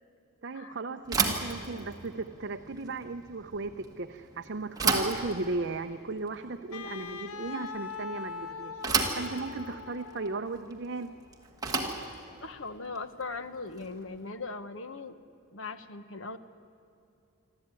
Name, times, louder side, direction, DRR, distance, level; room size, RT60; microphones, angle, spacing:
voice 1, 0.4-8.8 9.2-11.1, right 3 dB, 50° right, 6 dB, 0.6 m, -36 dB
Bicycle / Thump thud, 1.0-14.1, right 4 dB, 15° right, 1.9 m, -34 dB
Wind instrument woodwind instrument, 6.7-10.8, left 5 dB, 85° left, 0.9 m, -41 dB
voice 2, 12.4-15.2 15.5-16.4, left 3 dB, 60° left, 11 dB, 1.1 m, -39 dB
25.0 x 14.0 x 9.7 m, 2.7 s
head